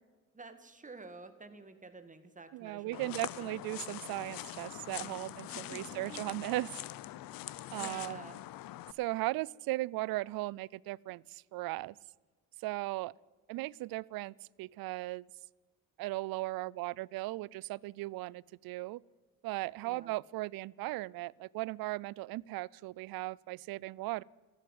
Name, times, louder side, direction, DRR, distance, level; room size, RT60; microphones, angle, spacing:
voice 1, 0.3-3.2 5.5-6.2 7.7-8.4 19.8-20.1, right 3 dB, 20° right, 8 dB, 2.0 m, -50 dB
voice 2, 2.5-6.7 7.7-8.2 9.0-11.9 12.6-13.1 13.5-15.2 16.0-19.0 19.4-24.2, right 19 dB, 75° right, 25 dB, 0.5 m, -37 dB
sound 1, 2.9-8.9, left 14 dB, 70° left, 0.7 m, -43 dB
14.0 x 10.5 x 9.2 m, 1.4 s
cardioid pair, 85°, 36 cm